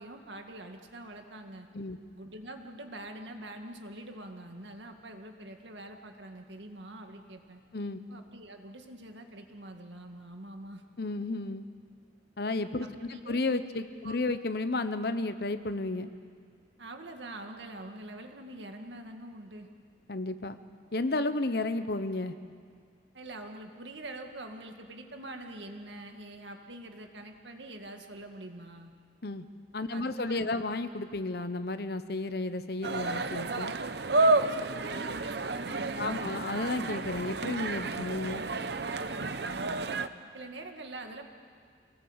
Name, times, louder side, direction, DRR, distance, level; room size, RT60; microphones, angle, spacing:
voice 1, 0.0-1.7 2.1-7.6 8.1-10.8 12.8-13.4 14.0-14.2 16.8-19.7 23.1-28.9 29.9-30.6 34.2-36.3 37.9-38.1 38.7-40.0 40.3-41.3, right 1 dB, 80° right, 4 dB, 2.1 m, -45 dB
voice 2, 11.0-11.6 12.4-16.1 20.1-20.6 20.9-22.3 29.2-29.4 29.7-33.7 36.0-38.4, left 2 dB, 60° left, 11 dB, 1.0 m, -32 dB
sound 1, 32.8-40.1, right 3 dB, 65° right, 0.8 m, -30 dB
26.5 x 19.0 x 8.1 m, 2.1 s
head